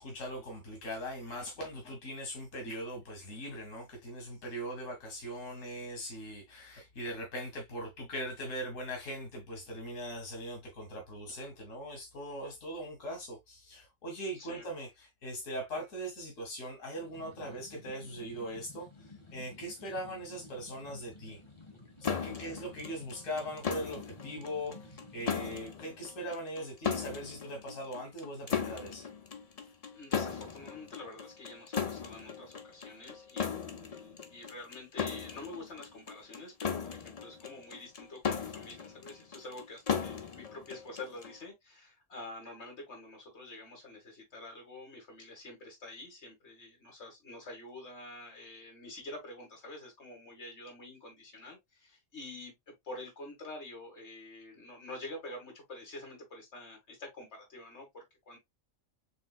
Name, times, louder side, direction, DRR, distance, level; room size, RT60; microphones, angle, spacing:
voice 1, 0.0-21.4 22.0-29.1, equal, 90° left, 1.7 m, -40 dB
sound 1, 16.9-25.3, left 2 dB, 25° left, 1.2 m, -53 dB
sound 2, 22.0-41.4, left 7 dB, 40° left, 0.6 m, -38 dB
voice 2, 29.6-58.4, left 2 dB, 60° left, 2.3 m, -47 dB
5.3 x 3.4 x 2.4 m
omnidirectional pair, 1.3 m